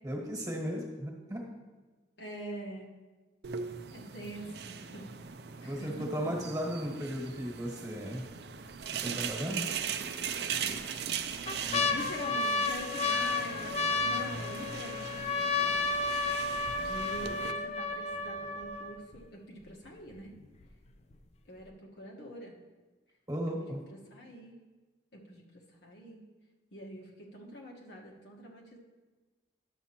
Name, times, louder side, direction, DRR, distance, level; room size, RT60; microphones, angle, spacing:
voice 1, 0.0-1.5 5.6-8.3 9.0-9.7 11.6-11.9 23.3-23.8, equal, 20° right, -1 dB, 1.4 m, -36 dB
voice 2, 2.2-2.9 3.9-5.1 5.6-5.9 10.6-10.8 11.9-15.9 16.8-20.3 21.5-22.5 23.6-24.6 25.1-25.4 25.8-26.2 26.7-28.8, equal, 70° left, -2 dB, 1.3 m, -45 dB
sound 1, 3.4-17.5, right 7 dB, 65° right, 0.4 m, -39 dB
sound 2, 8.3-8.7 9.2-9.3 10.2-10.7 11.2-19.2 19.9-20.0 20.1-20.6 21.1-21.2, left 3 dB, 35° left, 0.4 m, -32 dB
11.5 x 7.3 x 2.9 m, 1.3 s
head